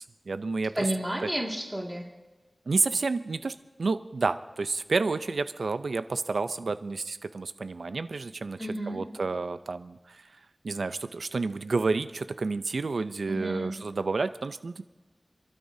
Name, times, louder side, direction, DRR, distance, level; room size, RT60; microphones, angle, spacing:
voice 1, 0.0-0.9 2.7-8.6 8.9-10.2 10.6-14.8, right 3 dB, 85° right, 12 dB, 0.5 m, -30 dB
voice 2, 0.7-2.0 8.6-9.1 13.3-13.8, right 1 dB, 10° right, -1 dB, 2.1 m, -31 dB
28.0 x 12.5 x 2.7 m, 1.2 s
wide cardioid pair, 65°, 0 cm